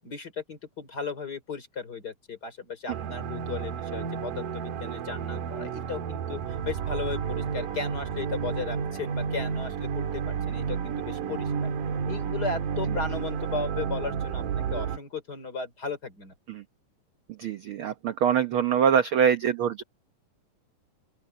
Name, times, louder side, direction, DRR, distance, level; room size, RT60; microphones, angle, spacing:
voice 1, 0.0-11.7 12.1-16.3, left 4 dB, 30° left, 3.6 m, -36 dB
sound 1, 2.9-15.0, right 6 dB, 85° right, 3.1 m, -31 dB
voice 2, 17.4-19.8, right 8 dB, 70° right, 1.2 m, -24 dB
open air
omnidirectional pair, 3.7 m